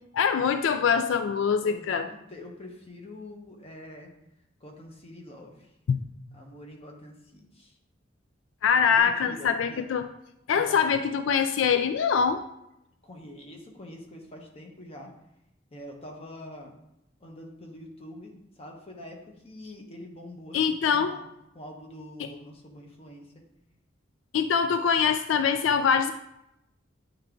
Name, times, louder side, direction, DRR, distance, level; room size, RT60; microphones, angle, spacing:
voice 1, 0.1-2.1 5.9-6.0 8.6-10.1 10.5-12.4 20.5-21.1 22.2-22.3 24.3-26.1, left 6 dB, 80° left, 9 dB, 0.3 m, -24 dB
voice 2, 1.6-4.1 4.6-5.7 6.3-7.8 8.9-9.8 10.5-10.8 13.0-15.1 15.7-16.8 17.2-21.3 21.5-23.3, left 1 dB, 30° left, 1 dB, 1.1 m, -45 dB
8.7 x 3.4 x 3.7 m, 0.82 s
head